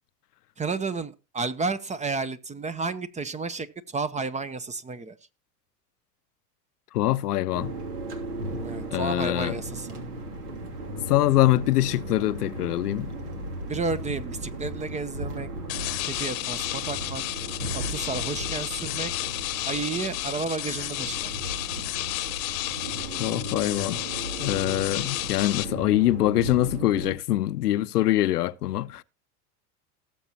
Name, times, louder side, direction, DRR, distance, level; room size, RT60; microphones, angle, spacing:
voice 1, 0.6-5.2 8.6-9.9 13.7-15.5 16.0-17.2 17.7-19.1 19.6-21.3, right 4 dB, 15° right, 0.7 m, -32 dB
voice 2, 6.9-7.7 8.9-9.6 11.1-13.1 23.2-24.0 24.4-29.0, left 15 dB, 80° left, 0.7 m, -24 dB
sound 1, 7.5-27.2, right 1 dB, 75° right, 2.8 m, -36 dB
sound 2, 15.7-25.7, left 20 dB, 60° left, 1.0 m, -32 dB
18.5 x 7.1 x 2.9 m
hypercardioid pair, 90°, 47 cm